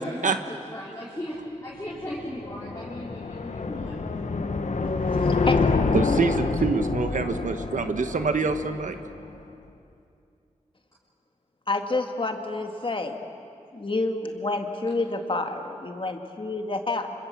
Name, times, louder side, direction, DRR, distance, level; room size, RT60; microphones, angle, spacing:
voice 1, 0.0-4.2 5.1-5.4, equal, 25° left, -7 dB, 4.1 m, -37 dB
sound 1, 1.8-9.2, left 4 dB, 70° left, 1.3 m, -27 dB
voice 2, 4.5-5.9 11.7-13.2 13.7-17.1, left 2 dB, 40° left, 5 dB, 1.9 m, -29 dB
voice 3, 5.9-9.0, right 4 dB, 90° right, 8 dB, 1.1 m, -25 dB
26.0 x 26.0 x 7.5 m, 2.6 s
wide cardioid pair, 90°, 13 cm